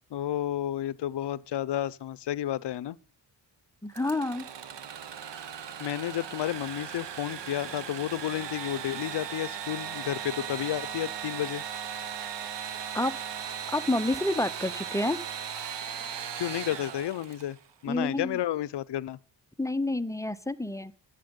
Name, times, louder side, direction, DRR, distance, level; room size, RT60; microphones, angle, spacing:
voice 1, 0.1-3.0 5.8-11.6 16.4-17.6 17.8-19.2, left 12 dB, 65° left, 0.6 m, -31 dB
voice 2, 3.8-4.4 12.9-13.1 13.7-15.2 17.9-18.4 19.6-20.9, left 2 dB, 5° left, 0.5 m, -29 dB
Engine / Sawing, 3.9-17.6, right 8 dB, 65° right, 0.9 m, -37 dB
11.5 x 8.1 x 5.2 m
cardioid pair, 75°, 46 cm